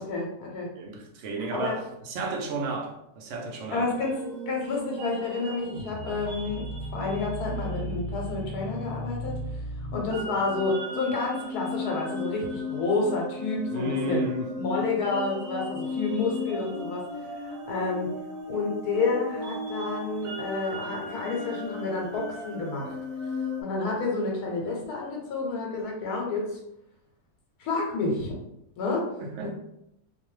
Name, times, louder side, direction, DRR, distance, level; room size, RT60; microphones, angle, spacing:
voice 1, 0.0-0.7 1.5-1.8 3.7-6.6 6.9-9.4 9.9-14.3 14.6-17.1 17.3-18.1 18.5-23.0 23.6-26.6 27.6-28.4 28.8-29.1 29.4-29.5, left 3 dB, 80° left, 1.2 m, -29 dB
voice 2, 0.8-3.9 13.7-14.5 14.7-14.8 29.2-29.5, right 3 dB, 60° right, 0.8 m, -32 dB
sound 1, 3.8-23.6, left 1 dB, 85° right, 1.2 m, -35 dB
2.6 x 2.2 x 3.1 m
omnidirectional pair, 1.6 m